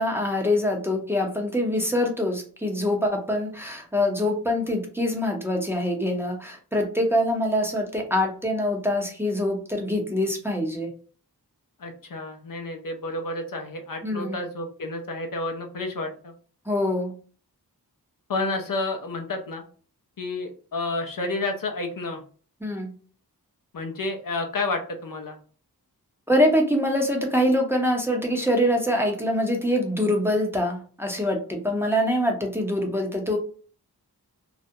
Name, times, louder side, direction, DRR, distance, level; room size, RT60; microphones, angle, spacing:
voice 1, 0.0-10.9 14.0-14.4 16.7-17.1 22.6-22.9 26.3-33.4, left 1 dB, 5° right, 1 dB, 0.6 m, -24 dB
voice 2, 11.8-16.3 18.3-19.6 20.2-22.2 23.7-25.4, left 2 dB, 60° left, 4 dB, 0.5 m, -30 dB
2.4 x 2.0 x 2.6 m, 0.42 s
wide cardioid pair, 45°, 39 cm